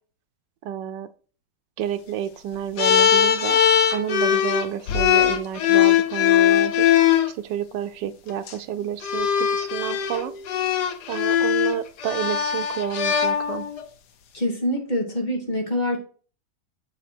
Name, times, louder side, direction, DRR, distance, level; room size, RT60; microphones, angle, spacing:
voice 1, 0.6-1.1 1.8-3.6 3.9-6.9 7.3-10.3 11.1-13.7, right 10 dB, 90° right, 12 dB, 1.3 m, -30 dB
sound 1, 2.8-7.3 8.3-8.5 9.0-13.8, left 9 dB, 75° left, 1.4 m, -20 dB
voice 2, 14.3-16.0, left 1 dB, 25° left, 1 dB, 1.9 m, -25 dB
7.2 x 5.0 x 4.3 m, 0.39 s
omnidirectional pair, 1.8 m